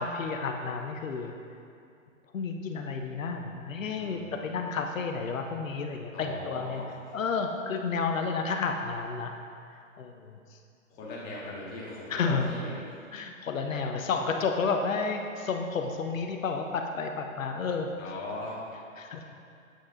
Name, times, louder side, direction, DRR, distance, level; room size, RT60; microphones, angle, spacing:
voice 1, 0.0-1.3 2.3-6.8 7.1-9.3 10.0-10.4 12.1-12.5 13.1-17.9 19.0-19.2, left 4 dB, 75° left, 4 dB, 0.7 m, -31 dB
voice 2, 4.0-4.5 6.1-6.9 11.0-12.7 17.9-18.6, left 2 dB, 20° left, -6 dB, 1.5 m, -39 dB
8.2 x 6.2 x 2.5 m, 2.4 s
hypercardioid pair, 135°, 40 cm